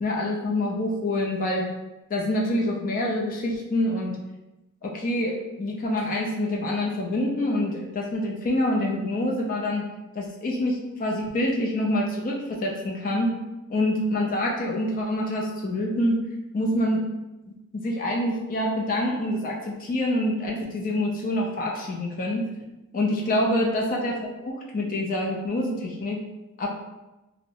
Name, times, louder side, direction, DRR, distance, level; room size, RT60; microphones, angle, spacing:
voice 1, 0.0-1.7 2.1-4.2 4.8-9.8 10.1-13.3 13.7-16.2 16.5-17.0 17.5-22.4 22.9-24.1 24.4-26.2 26.6-26.7, left 1 dB, 40° left, -2 dB, 0.4 m, -26 dB
2.6 x 2.0 x 2.7 m, 0.99 s
head